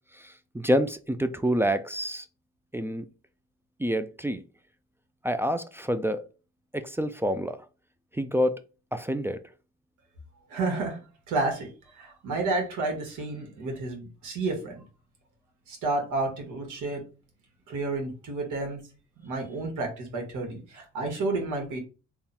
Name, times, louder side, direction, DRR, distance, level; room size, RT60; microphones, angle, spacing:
voice 1, 0.2-2.3 2.7-3.0 3.8-4.4 5.2-6.2 6.7-7.6 8.1-8.6 8.9-9.4, equal, 10° right, 0.3 m, -27 dB
voice 2, 10.5-11.0 11.3-14.7 15.7-17.0 17.7-18.8 19.2-21.8, right 3 dB, 80° right, 1.5 m, -31 dB
3.6 x 2.3 x 4.2 m
cardioid pair, 90°, 30 cm